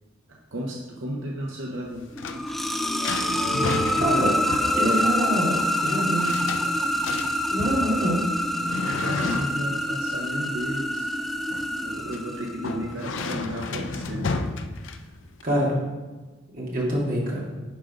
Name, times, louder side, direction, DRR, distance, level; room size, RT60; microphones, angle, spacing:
voice 1, 0.3-2.1 8.9-11.2 11.8-14.3, equal, 75° right, -1 dB, 0.8 m, -33 dB
sound 1, 1.8-15.4, left 3 dB, 70° left, 0.5 m, -33 dB
sound 2, 2.1-12.9, equal, ahead, 0.4 m, -26 dB
voice 2, 4.0-4.3 4.7-5.6 5.8-6.3 7.5-8.2 15.4-15.7 16.5-17.5, equal, 45° right, -4 dB, 2.1 m, -25 dB
10.5 x 3.8 x 5.0 m, 1.3 s
head